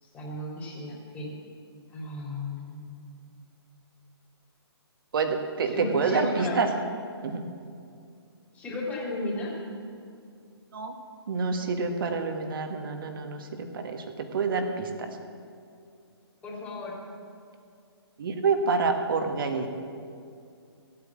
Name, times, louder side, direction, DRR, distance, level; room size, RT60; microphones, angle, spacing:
voice 1, 0.0-1.3 1.9-3.1 5.6-6.7 8.5-9.5 16.4-16.9, left 2 dB, 10° left, -5 dB, 3.4 m, -35 dB
voice 2, 5.1-6.7 7.2-7.4 10.7-10.9 11.3-15.2 18.2-19.7, right 4 dB, 55° right, 5 dB, 1.6 m, -28 dB
15.5 x 8.9 x 7.4 m, 2.4 s
figure-of-eight pair, 135°, 14 cm